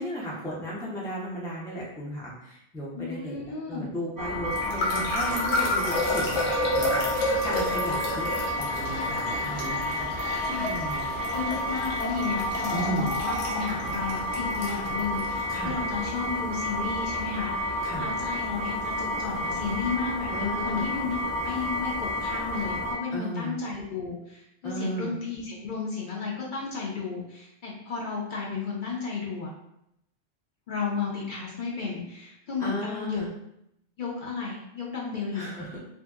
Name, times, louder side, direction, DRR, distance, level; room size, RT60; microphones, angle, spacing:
voice 1, 0.0-8.3 8.6-10.1 10.6-11.1 12.7-13.1 15.5-15.8 17.8-18.1 20.3-20.9 23.1-23.6 24.6-25.1 32.6-33.3 35.3-35.8, right 1 dB, 5° left, -6 dB, 0.4 m, -35 dB
voice 2, 2.9-3.9 10.5-10.7 11.3-29.5 30.7-33.2 34.0-35.5, left 5 dB, 55° left, -4 dB, 0.7 m, -33 dB
sound 1, 4.2-22.9, left 1 dB, 45° right, 0.9 m, -31 dB
sound 2, 4.5-15.3, left 1 dB, 85° left, 1.1 m, -30 dB
2.7 x 2.5 x 2.3 m, 0.79 s
omnidirectional pair, 1.1 m